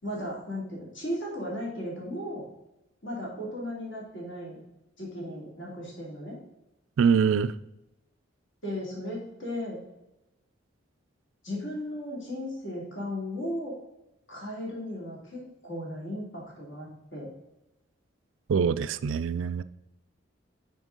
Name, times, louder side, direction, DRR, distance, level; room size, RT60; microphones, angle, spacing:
voice 1, 0.0-2.5 3.0-4.6 5.0-6.4 8.6-9.8 11.4-13.7 14.3-17.3, left 1 dB, 65° left, 2.8 m, -36 dB
voice 2, 7.0-7.5 18.5-19.6, right 6 dB, 70° right, 0.3 m, -24 dB
6.2 x 4.4 x 5.2 m
head